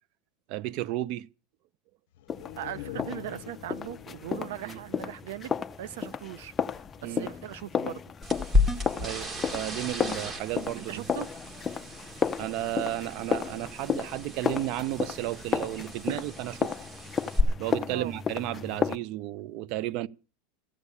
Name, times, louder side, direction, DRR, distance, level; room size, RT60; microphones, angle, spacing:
voice 1, 0.5-1.3 4.6-4.8 7.0-7.3 9.0-11.0 12.4-16.7 17.6-20.1, right 14 dB, 45° right, 0.7 m, -33 dB
sound 1, 2.1-5.9 6.2-6.3, left 15 dB, 75° left, 0.7 m, -45 dB
sound 2, 2.3-19.0, left 6 dB, 15° left, 0.7 m, -33 dB
voice 2, 2.6-6.5 7.0-8.0 10.1-10.2 10.8-11.3 16.1-16.2 17.8-18.1, right 12 dB, 80° right, 0.8 m, -39 dB
sound 3, 8.2-17.4, left 2 dB, 20° right, 1.8 m, -33 dB
15.0 x 8.3 x 8.6 m
supercardioid pair, 160°, 0 cm